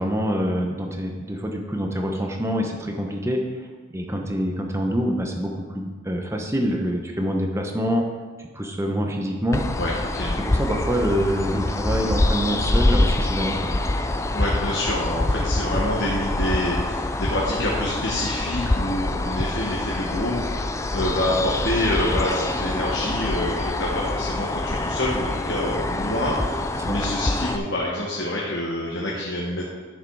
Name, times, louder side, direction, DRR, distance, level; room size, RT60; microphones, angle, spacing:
voice 1, 0.0-3.4 3.9-8.0 8.4-9.6 10.4-13.8 26.8-27.0, equal, 15° right, 2 dB, 0.9 m, -26 dB
sound 1, 9.5-27.6, left 2 dB, 15° left, 0.3 m, -25 dB
voice 2, 9.8-10.4 14.3-29.7, left 1 dB, 55° left, -4 dB, 1.4 m, -27 dB
10.5 x 6.6 x 4.8 m, 1.5 s
head